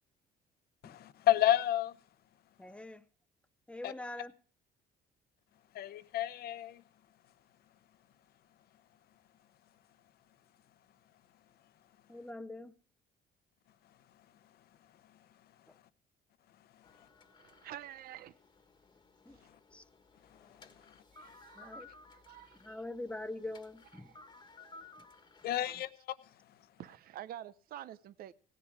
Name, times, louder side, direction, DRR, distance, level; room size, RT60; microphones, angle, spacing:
voice 1, 0.8-2.0 3.8-3.9 5.7-6.8 19.4-19.6 20.3-20.9 25.4-25.9 26.2-26.6, left 12 dB, 65° left, 0.9 m, -31 dB
voice 2, 2.6-3.0 3.7-4.3 12.1-12.7 19.3-19.4 19.7-19.8 21.6-21.9 22.6-24.1 25.0-25.1, left 2 dB, 5° left, 0.8 m, -43 dB
sound 1, 16.8-25.9, left 3 dB, 25° left, 1.5 m, -58 dB
voice 3, 17.2-18.4 19.3-19.5 21.1-22.8 23.9-24.2 24.5-24.9 25.6-25.8 26.8-28.3, right 12 dB, 60° right, 0.7 m, -49 dB
17.0 x 10.5 x 4.8 m
cardioid pair, 110°, 17 cm